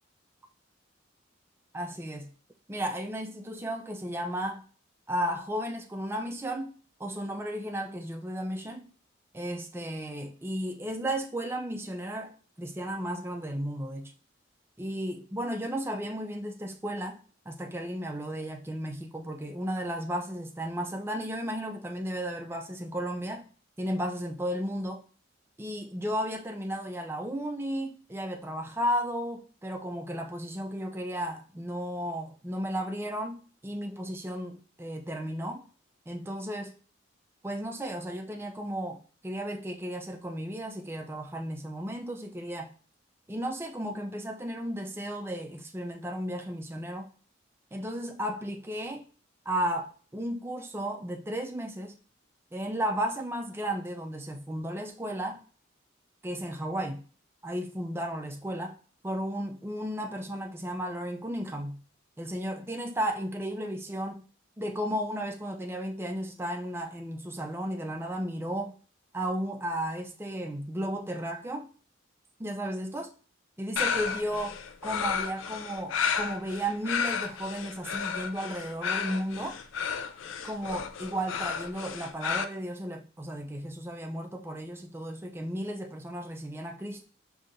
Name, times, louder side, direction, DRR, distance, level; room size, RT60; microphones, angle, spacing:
voice 1, 1.7-2.3 2.7-4.6 5.1-6.7 7.0-8.9 9.3-14.1 14.8-23.4 23.8-25.0 25.6-35.6 36.1-36.7 37.4-42.7 43.3-47.1 47.7-49.0 49.5-52.0 52.5-55.4 56.2-57.0 57.4-58.7 59.0-61.8 62.2-64.2 64.6-68.7 69.1-71.7 72.4-73.1 73.6-79.6 80.4-87.0, equal, 10° right, 0.4 m, -34 dB
sound 1, 73.8-82.4, left 6 dB, 80° left, 0.4 m, -32 dB
5.1 x 2.7 x 2.5 m
head